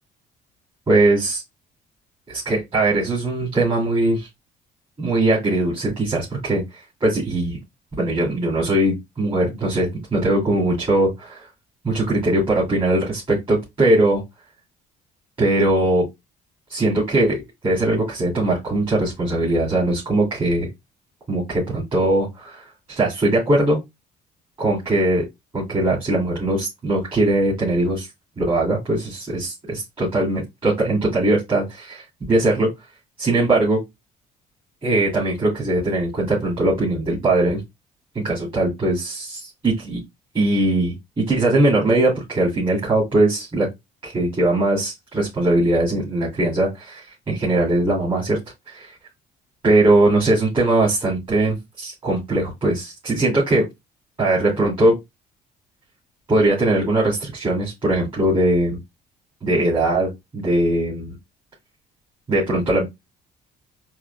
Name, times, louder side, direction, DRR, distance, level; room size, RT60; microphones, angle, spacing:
voice 1, 0.9-1.4 2.3-4.3 5.0-6.6 7.0-7.6 8.0-11.5 11.8-14.2 15.4-16.0 16.7-20.7 21.3-23.8 24.6-25.3 25.5-28.1 28.4-32.7 33.2-33.8 34.8-37.6 38.1-40.0 40.3-43.7 44.0-48.4 48.7-48.9 49.6-53.6 54.2-54.9 56.3-58.8 59.4-61.1 62.3-62.9, right 2 dB, 30° right, -8 dB, 2.4 m, -20 dB
4.6 x 2.5 x 2.3 m, 0.20 s
cardioid pair, 110°, 17 cm